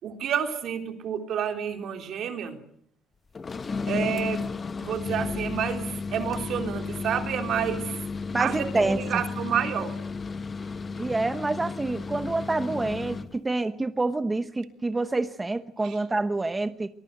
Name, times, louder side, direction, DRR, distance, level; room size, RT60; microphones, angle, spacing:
voice 1, 0.0-2.6 3.9-4.5 4.8-8.0 8.4-10.0 15.8-15.9, right 8 dB, 60° right, 6 dB, 3.6 m, -29 dB
sound 1, 3.3-13.4, left 4 dB, 30° left, 1.0 m, -33 dB
voice 2, 8.3-9.0 11.0-16.9, right 2 dB, 15° right, 10 dB, 1.0 m, -27 dB
24.0 x 21.0 x 8.0 m, 0.65 s
cardioid pair, 130°, 0 cm